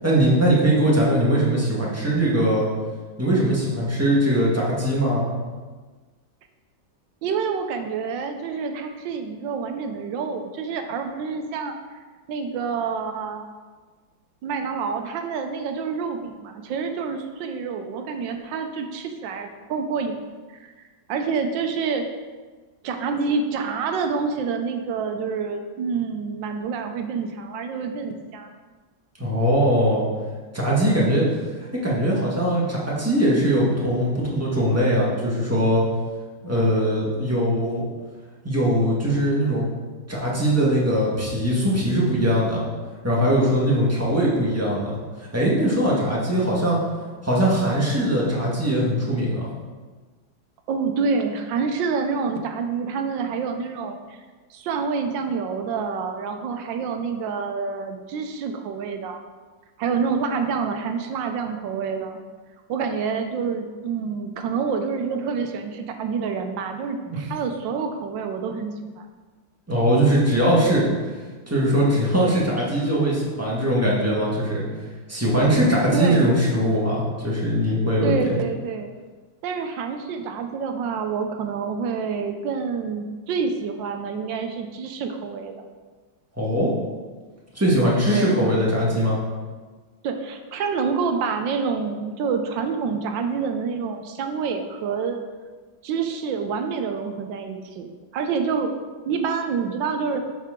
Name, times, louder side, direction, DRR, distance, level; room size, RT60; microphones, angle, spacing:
voice 1, 0.0-2.7 3.2-5.3 29.2-30.0 30.5-31.2 31.8-35.8 36.4-37.8 38.4-39.7 40.1-42.6 43.0-44.9 45.2-46.8 47.2-49.5 67.1-67.2 69.7-70.8 71.5-74.6 75.1-78.2 86.4-86.7 87.5-89.2, equal, 10° right, -5 dB, 1.3 m, -21 dB
voice 2, 7.2-11.7 12.3-13.5 14.4-20.2 20.6-20.7 21.1-22.0 22.8-28.5 50.7-54.2 54.5-59.2 59.8-62.2 62.7-69.1 75.9-76.3 78.0-78.9 79.4-85.5 88.1-88.4 90.0-95.2 95.8-98.7 99.1-100.2, right 5 dB, 75° right, 5 dB, 1.3 m, -27 dB
7.2 x 5.9 x 3.7 m, 1.4 s
omnidirectional pair, 2.1 m